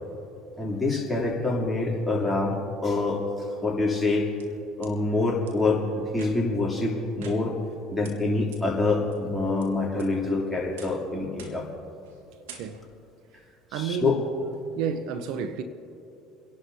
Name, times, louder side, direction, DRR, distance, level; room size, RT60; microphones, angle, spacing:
voice 1, 0.6-4.3 4.8-5.9 6.1-7.6 7.9-11.7 13.7-14.2, left 3 dB, 10° left, 3.1 m, -26 dB
sound 1, 4.4-4.9 5.5-5.6 6.1-6.6 7.2-7.8 8.0-8.1 8.5-8.6 9.1-9.6 10.0-10.4 10.8-11.0 11.4-11.7 12.0-12.2 12.5-13.0, right 6 dB, 85° right, 1.5 m, -48 dB
voice 2, 13.7-14.2 14.8-15.6, right 7 dB, 70° right, 0.8 m, -30 dB
30.0 x 11.5 x 2.8 m
supercardioid pair, 85°, 0 cm